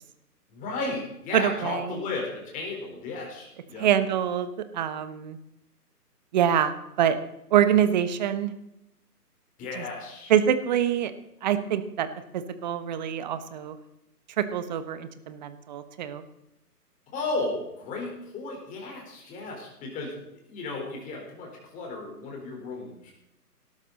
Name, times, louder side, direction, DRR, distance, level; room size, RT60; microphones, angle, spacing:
voice 1, 0.5-3.9 9.6-10.3 17.1-20.2 20.5-23.1, left 3 dB, 15° left, 0 dB, 4.2 m, -34 dB
voice 2, 1.3-2.0 3.8-5.4 6.3-7.2 7.5-8.5 9.8-9.9 10.3-11.1 11.4-12.1 12.3-13.8 14.4-16.2, right 9 dB, 30° right, 12 dB, 1.1 m, -25 dB
18.5 x 13.0 x 4.1 m, 0.84 s
figure-of-eight pair, 140°, 48 cm